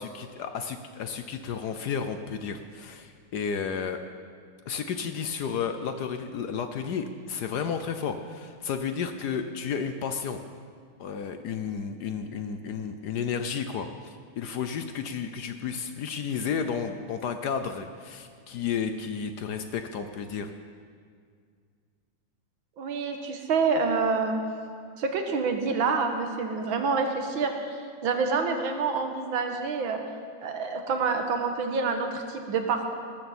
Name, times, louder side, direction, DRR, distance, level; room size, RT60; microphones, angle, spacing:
voice 1, 0.0-4.0 4.7-10.4 11.0-20.5, left 6 dB, 65° left, 8 dB, 1.1 m, -32 dB
voice 2, 22.8-24.4 25.0-27.8 28.0-30.0 30.4-33.0, right 4 dB, 70° right, 5 dB, 2.0 m, -27 dB
19.0 x 14.0 x 4.3 m, 2.1 s
omnidirectional pair, 2.3 m